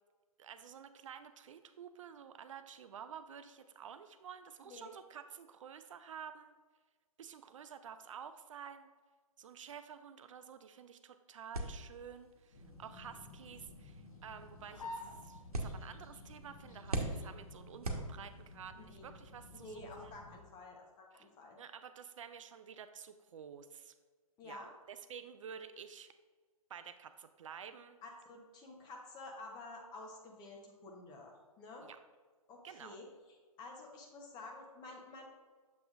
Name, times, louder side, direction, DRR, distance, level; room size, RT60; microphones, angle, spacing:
voice 1, 0.4-6.6 7.2-8.9 9.4-20.1 21.1-21.3 21.6-23.9 24.4-26.1 26.7-28.0 31.8-32.0 32.6-33.0, right 7 dB, 60° right, 9 dB, 0.4 m, -51 dB
sound 1, 11.5-18.7, right 1 dB, 90° right, 1.0 m, -44 dB
sound 2, 12.5-20.4, left 2 dB, 70° left, 1.3 m, -52 dB
voice 2, 18.8-19.1 19.5-21.6 24.4-24.7 28.0-31.9 32.5-33.1 33.6-35.3, left 2 dB, 20° left, 1 dB, 1.1 m, -51 dB
7.1 x 5.9 x 2.5 m, 1.4 s
figure-of-eight pair, 130°, 19 cm